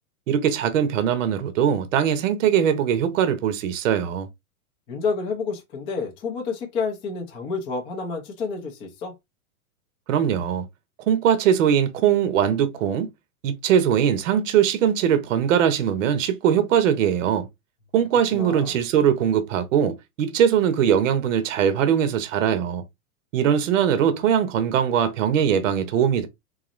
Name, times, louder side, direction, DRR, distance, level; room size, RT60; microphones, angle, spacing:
voice 1, 0.3-4.3 10.1-10.7 11.1-13.1 13.4-17.5 17.9-22.8 23.3-26.3, right 9 dB, 55° right, 0.8 m, -21 dB
voice 2, 4.9-9.1 18.3-18.8, left 4 dB, 10° left, 0.5 m, -29 dB
4.0 x 2.5 x 3.0 m
hypercardioid pair, 155°, 45 cm